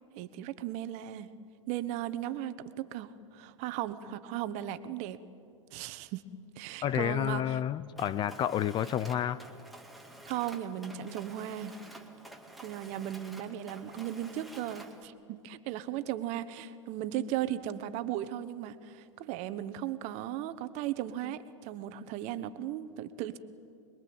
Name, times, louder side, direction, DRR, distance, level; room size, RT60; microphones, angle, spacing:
voice 1, 0.1-1.3 1.7-5.2 5.7-6.2 6.6-7.6 10.3-11.7 12.6-23.4, right 12 dB, 40° right, 1.3 m, -36 dB
voice 2, 6.8-9.4, left 10 dB, 25° left, 0.6 m, -30 dB
Mechanisms, 8.0-15.1, right 1 dB, ahead, 2.1 m, -50 dB
25.5 x 22.0 x 8.8 m
hypercardioid pair, 110°, 17 cm